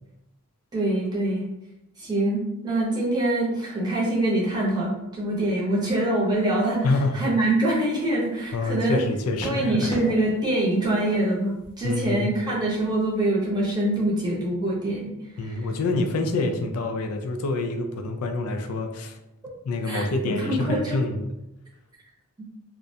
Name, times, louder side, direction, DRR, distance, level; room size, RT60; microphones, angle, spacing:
voice 1, 0.7-1.4 2.0-9.0 9.4-15.7 19.8-21.0, right 1 dB, 20° right, -5 dB, 0.7 m, -25 dB
sound 1, 6.3-6.6 7.4-8.7 9.4-10.3 10.6-12.0 12.9-13.0, equal, 25° left, 0.7 m, -39 dB
voice 2, 6.8-7.2 8.5-9.9 11.8-12.3 15.4-19.2 19.7-21.3, left 2 dB, 85° left, 6 dB, 0.3 m, -26 dB
2.3 x 2.1 x 2.6 m, 0.87 s
head